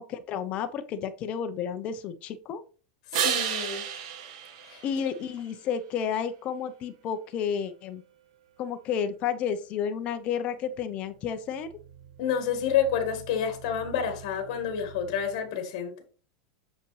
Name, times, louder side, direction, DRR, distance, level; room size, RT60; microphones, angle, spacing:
voice 1, 0.0-2.6 4.8-8.0 8.6-11.8, left 7 dB, 35° left, 10 dB, 0.8 m, -31 dB
voice 2, 3.1-3.8 4.6-4.8 12.2-15.9, left 8 dB, 55° left, 7 dB, 1.7 m, -29 dB
sound 1, 3.1-5.7 11.4-15.4, right 8 dB, 65° right, 1.5 m, -35 dB
6.8 x 5.2 x 3.2 m, 0.37 s
supercardioid pair, 160°, 4 cm